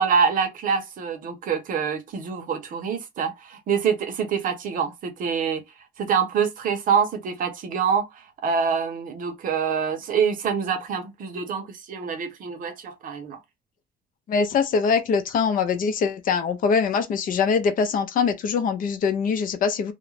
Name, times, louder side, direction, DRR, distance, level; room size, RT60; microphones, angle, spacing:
voice 1, 0.0-5.6 6.0-13.4, right 6 dB, 55° right, 0.7 m, -25 dB
voice 2, 14.3-19.9, left 5 dB, 55° left, 0.6 m, -23 dB
2.3 x 2.1 x 3.1 m
cardioid pair, 110°, 17 cm